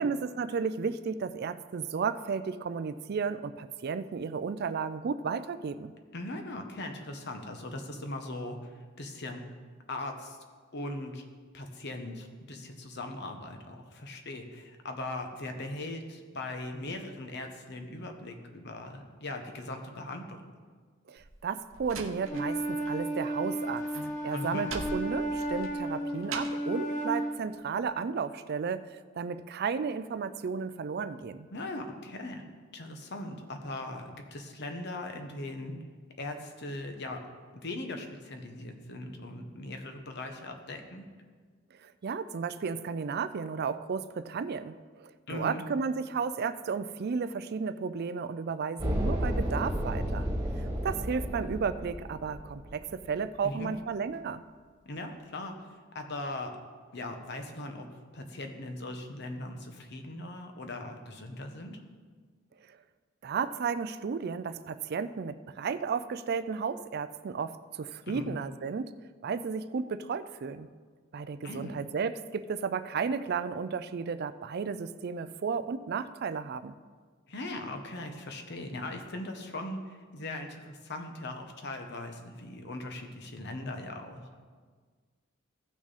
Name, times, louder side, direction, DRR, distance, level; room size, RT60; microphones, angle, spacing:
voice 1, 0.0-5.9 21.1-23.8 24.2-31.5 41.8-50.3 50.6-54.4 62.7-62.8 63.2-68.9 69.2-70.7 71.1-76.8, right 5 dB, 55° right, 12 dB, 0.4 m, -33 dB
voice 2, 6.1-9.5 9.9-10.4 10.7-11.2 11.5-20.4 24.3-24.7 31.5-32.4 32.7-35.8 36.2-37.2 37.5-41.1 45.3-45.6 53.4-53.7 54.8-55.6 55.9-56.6 56.9-57.9 58.1-61.8 68.1-68.4 71.4-71.8 77.3-84.3, left 2 dB, 60° left, 5 dB, 1.1 m, -39 dB
Slam, 21.2-23.0 23.2-26.7, right 4 dB, 85° right, 0.8 m, -42 dB
Wind instrument woodwind instrument, 22.2-27.4, right 1 dB, 40° left, 1.2 m, -33 dB
sound 1, 48.8-53.1, equal, 20° right, 1.6 m, -32 dB
15.5 x 6.0 x 4.1 m, 1.5 s
head